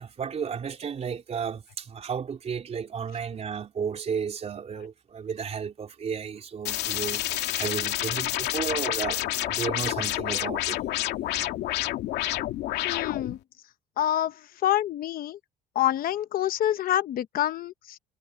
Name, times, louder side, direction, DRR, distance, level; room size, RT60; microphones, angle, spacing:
voice 1, 0.0-10.8, right 7 dB, 40° right, 3.5 m, -33 dB
sound 1, 6.6-13.4, left 14 dB, 80° left, 2.4 m, -29 dB
voice 2, 12.8-13.4 14.0-15.4 15.7-18.0, left 12 dB, 60° left, 0.9 m, -27 dB
cardioid pair, 110°, 17 cm